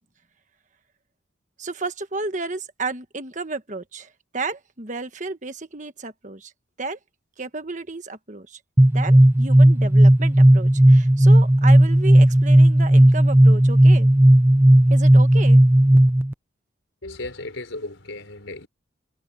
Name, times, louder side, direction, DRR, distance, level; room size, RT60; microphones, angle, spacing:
voice 1, 1.6-6.5 6.8-7.0 7.4-8.6 8.9-14.1 14.9-15.6, right 3 dB, 40° right, 1.5 m, -32 dB
sound 1, 8.8-16.3, right 1 dB, 10° right, 0.4 m, -14 dB
voice 2, 17.0-18.7, left 2 dB, 80° left, 4.7 m, -35 dB
head